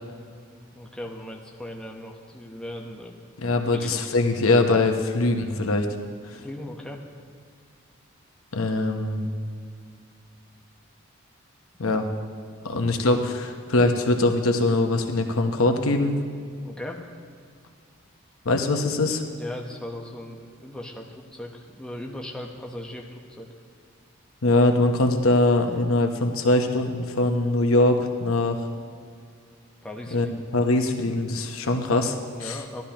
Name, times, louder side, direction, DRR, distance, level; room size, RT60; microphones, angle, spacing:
voice 1, 0.7-3.2 3.7-4.2 6.4-7.0 11.8-12.0 16.6-17.0 19.3-23.5 29.8-30.3 32.3-32.8, left 1 dB, 5° left, -1 dB, 0.9 m, -38 dB
voice 2, 3.4-5.9 8.5-9.3 11.8-12.1 12.6-16.1 18.4-19.2 24.4-28.6 30.1-32.6, left 2 dB, 85° left, 5 dB, 0.9 m, -22 dB
15.0 x 12.0 x 2.9 m, 2.2 s
head